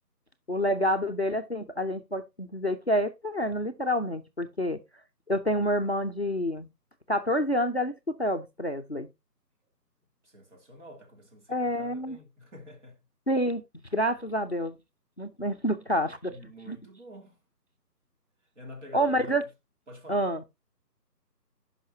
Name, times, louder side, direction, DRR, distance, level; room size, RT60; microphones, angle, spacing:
voice 1, 0.5-4.8 5.3-6.7 7.1-9.1 11.5-12.2 13.3-13.6 13.9-14.8 15.2-16.3 16.7-16.8 18.9-19.4 20.1-20.4, equal, 45° left, 0.5 m, -28 dB
voice 2, 10.2-13.0 16.3-17.4 18.5-19.5 19.9-20.3, left 1 dB, 45° right, 3.0 m, -47 dB
13.5 x 5.6 x 2.7 m
figure-of-eight pair, 160°, 50 cm